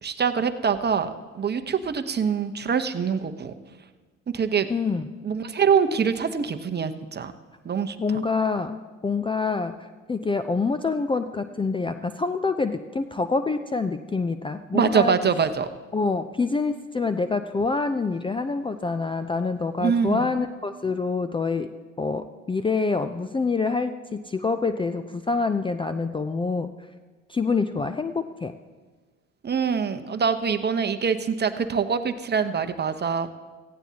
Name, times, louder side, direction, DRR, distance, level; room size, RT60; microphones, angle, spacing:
voice 1, 0.0-3.5 4.3-4.7 5.2-7.3 7.6-8.0 14.7-15.7 19.8-20.3 29.4-33.3, right 6 dB, 25° right, 9 dB, 1.0 m, -24 dB
voice 2, 4.7-5.0 8.0-9.8 10.1-15.2 15.9-21.7 22.0-26.7 27.3-28.5, left 4 dB, 15° left, 10 dB, 0.5 m, -26 dB
17.0 x 15.0 x 2.9 m, 1.3 s
hypercardioid pair, 65°, 38 cm